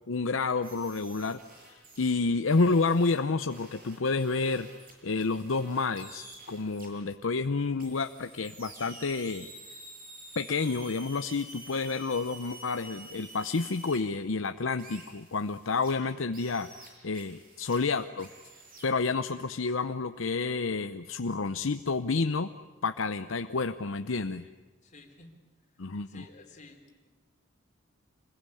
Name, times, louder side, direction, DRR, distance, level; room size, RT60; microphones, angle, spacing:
voice 1, 0.1-1.4 2.0-4.7 5.0-9.5 10.4-18.3 18.8-22.5 22.8-24.5 25.8-26.2, left 4 dB, 90° left, 9 dB, 0.8 m, -29 dB
sound 1, 0.6-2.1 2.4-6.9 7.8-14.0 14.8-15.9 16.3-17.8 18.2-18.9, right 2 dB, 45° right, 7.8 m, -49 dB
voice 2, 24.8-25.3 26.1-27.1, left 2 dB, 40° left, 3 dB, 4.0 m, -52 dB
26.5 x 21.0 x 9.9 m, 1.3 s
head